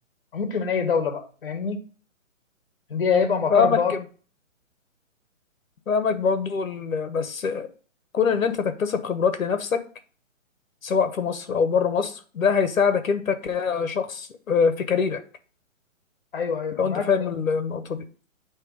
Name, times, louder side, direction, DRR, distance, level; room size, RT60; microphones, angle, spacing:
voice 1, 0.3-1.8 2.9-3.9 16.3-17.3, left 6 dB, 45° left, 7 dB, 1.2 m, -25 dB
voice 2, 3.5-4.0 5.9-7.7 8.1-9.8 10.8-15.2 16.8-18.0, left 6 dB, 85° left, 9 dB, 1.2 m, -24 dB
8.7 x 3.2 x 4.7 m, 0.39 s
hypercardioid pair, 175°, 40 cm